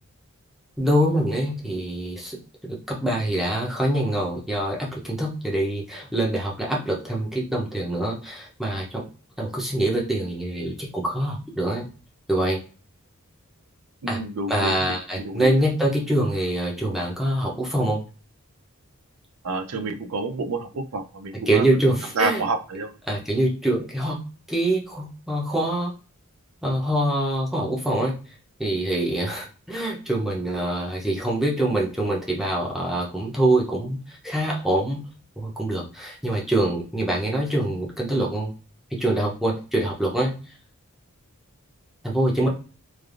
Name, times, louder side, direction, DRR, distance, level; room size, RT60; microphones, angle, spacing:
voice 1, 0.8-2.4 2.7-9.0 9.4-11.9 12.3-12.6 14.1-14.2 14.5-18.0 21.5-22.4 23.1-24.2 24.5-25.9 26.6-28.1 28.6-35.0 35.4-38.5 38.9-40.4 42.0-42.5, right 1 dB, ahead, -3 dB, 0.6 m, -24 dB
voice 2, 14.0-15.0 15.2-15.5 19.4-21.6 22.2-22.9, right 3 dB, 65° right, 8 dB, 0.5 m, -28 dB
3.3 x 2.4 x 2.4 m, 0.36 s
head